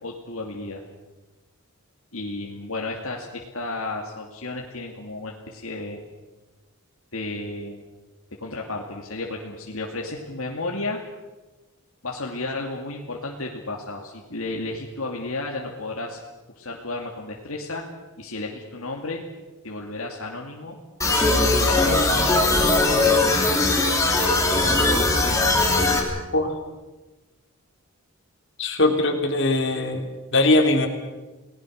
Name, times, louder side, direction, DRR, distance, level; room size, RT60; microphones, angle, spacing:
voice 1, 0.0-0.8 2.1-6.0 7.1-7.8 8.4-11.0 12.0-16.2 16.5-17.8 18.2-19.2 19.6-20.8 21.1-22.4, left 2 dB, 70° left, 0 dB, 2.5 m, -33 dB
sound 1, 21.0-26.0, left 2 dB, 15° left, 3.5 m, -20 dB
voice 2, 28.6-30.0 30.3-30.9, left 2 dB, 55° left, 3 dB, 3.4 m, -20 dB
30.0 x 19.0 x 6.5 m, 1.2 s
head